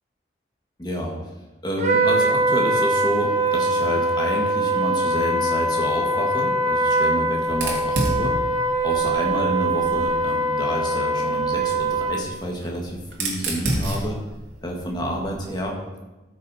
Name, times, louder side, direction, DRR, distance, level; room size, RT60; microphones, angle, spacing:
voice 1, 0.8-1.1 1.6-8.3 8.8-14.2 14.6-15.8, equal, 25° left, 0 dB, 1.8 m, -29 dB
Wind instrument woodwind instrument, 1.8-12.2, right 1 dB, 40° right, 1.2 m, -22 dB
Fire, 7.5-10.2 11.4-15.6, right 1 dB, 90° right, 2.2 m, -31 dB
14.0 x 6.3 x 4.3 m, 1.1 s
head